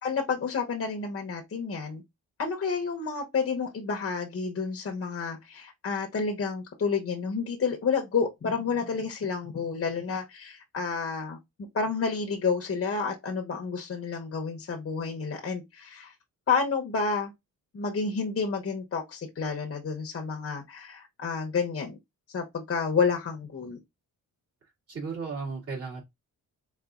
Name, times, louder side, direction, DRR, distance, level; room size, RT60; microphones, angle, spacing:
voice 1, 0.0-2.0 2.4-11.4 11.7-16.1 16.5-17.3 17.7-22.0 22.3-23.8, left 5 dB, 40° left, 0.9 m, -30 dB
voice 2, 24.9-26.0, right 4 dB, 40° right, 2.4 m, -34 dB
4.0 x 3.9 x 2.4 m
wide cardioid pair, 145°, 35 cm